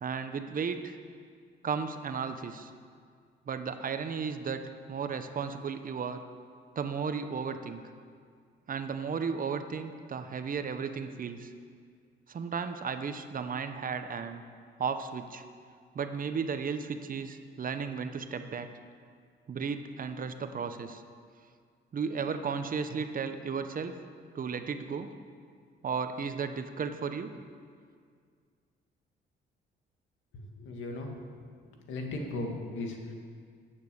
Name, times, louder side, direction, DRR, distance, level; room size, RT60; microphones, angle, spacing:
voice 1, 0.0-1.0 1.6-2.7 3.5-4.6 4.9-6.2 6.8-7.9 8.7-11.5 12.3-14.4 14.8-15.4 15.9-18.7 19.5-21.0 21.9-23.9 24.3-25.1 25.8-27.3, right 6 dB, 45° right, 9 dB, 0.9 m, -34 dB
voice 2, 30.3-31.1 31.9-33.1, left 2 dB, 80° left, 2 dB, 1.9 m, -37 dB
10.5 x 8.5 x 7.0 m, 2.1 s
cardioid pair, 90°, 20 cm